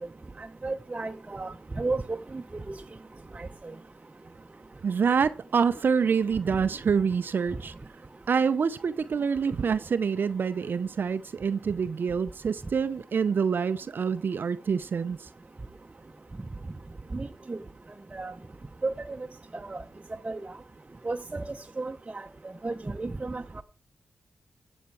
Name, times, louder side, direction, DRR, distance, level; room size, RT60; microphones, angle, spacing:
voice 1, 0.4-2.8 3.3-3.5 17.1-17.6 18.1-18.3 18.8-19.2 19.5-19.8 20.2-20.4 21.0-21.4 21.8-22.2 22.6-23.6, right 3 dB, 30° right, 0.8 m, -33 dB
voice 2, 4.8-7.7 8.3-15.3, right 6 dB, 65° right, 0.5 m, -26 dB
15.0 x 7.2 x 4.7 m
supercardioid pair, 40°, 4 cm